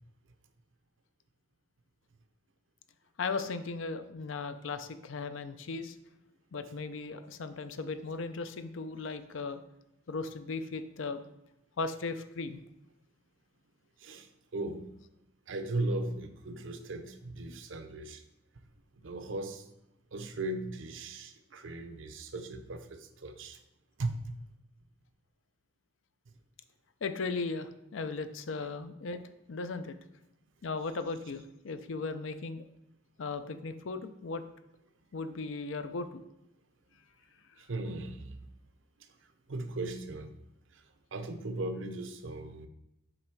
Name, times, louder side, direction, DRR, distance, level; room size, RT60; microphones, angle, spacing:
voice 1, 3.2-6.0 6.5-9.6 10.1-11.2 11.8-12.6 27.0-30.0 30.6-32.6 33.2-34.4 35.1-36.2, left 4 dB, 75° left, 10 dB, 0.5 m, -37 dB
voice 2, 14.5-14.9 15.5-18.2 19.0-19.6 20.1-23.6 24.0-24.3 28.6-28.7 37.6-38.4 39.5-40.3 40.7-40.8 41.1-42.7, right 2 dB, 70° right, 8 dB, 0.6 m, -37 dB
7.8 x 3.3 x 4.6 m, 0.86 s
head